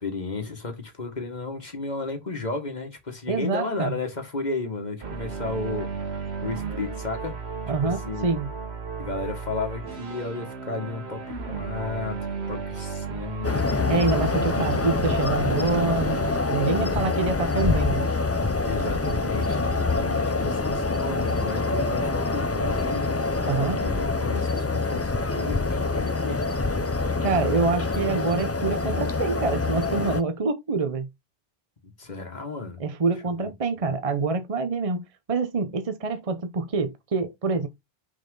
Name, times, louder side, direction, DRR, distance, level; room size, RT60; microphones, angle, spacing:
voice 1, 0.0-5.9 6.4-7.4 7.8-8.4 9.0-12.2 12.5-13.9 14.5-14.9 17.0-17.2 18.6-19.6 19.9-23.1 23.4-26.5 27.5-27.7 32.0-32.8 33.2-33.5 33.8-33.9, left 3 dB, 45° left, 1.9 m, -33 dB
voice 2, 3.3-4.0 7.7-8.5 13.9-18.1 23.4-23.8 27.2-31.1 32.8-37.7, right 4 dB, 35° right, 0.9 m, -26 dB
sound 1, 5.0-16.4, right 5 dB, 80° right, 1.5 m, -34 dB
sound 2, 13.4-30.2, left 3 dB, 20° left, 0.4 m, -25 dB
6.1 x 4.3 x 3.8 m
omnidirectional pair, 1.1 m